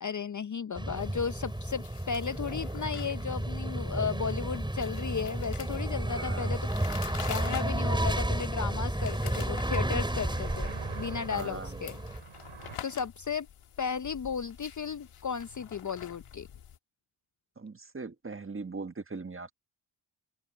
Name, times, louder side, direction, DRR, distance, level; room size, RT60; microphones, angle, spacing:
voice 1, 0.0-12.0 12.8-13.5 13.8-16.5, left 6 dB, 35° left, 0.6 m, -35 dB
sound 1, 0.8-12.2, right 1 dB, 10° right, 4.2 m, -32 dB
sound 2, 0.9-16.8, left 9 dB, 85° left, 2.2 m, -48 dB
voice 2, 6.1-6.5 11.3-11.8 17.6-19.5, right 4 dB, 25° right, 1.4 m, -40 dB
sound 3, 8.2-12.8, right 7 dB, 70° right, 3.7 m, -48 dB
open air
cardioid pair, 60°, 50 cm